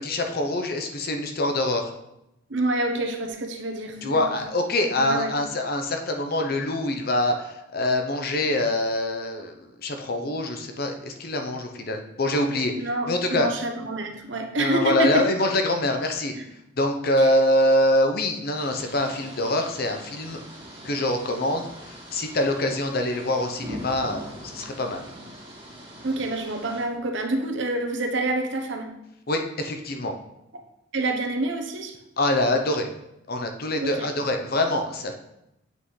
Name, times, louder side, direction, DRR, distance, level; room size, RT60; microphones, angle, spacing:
voice 1, 0.0-1.9 4.0-12.7 13.1-13.5 14.6-16.3 16.8-20.4 20.8-25.0 29.3-30.1 32.2-32.9 33.3-35.1, left 1 dB, 50° left, 4 dB, 0.7 m, -25 dB
voice 2, 2.5-4.2 5.0-5.3 12.8-15.2 16.3-16.4 17.2-17.3 26.0-28.9 30.5-30.6 30.9-31.9 33.8-34.1, right 2 dB, 65° right, 4 dB, 0.9 m, -27 dB
sound 1, 18.5-26.8, equal, 25° right, 2.0 m, -42 dB
7.9 x 5.4 x 3.2 m, 0.86 s
head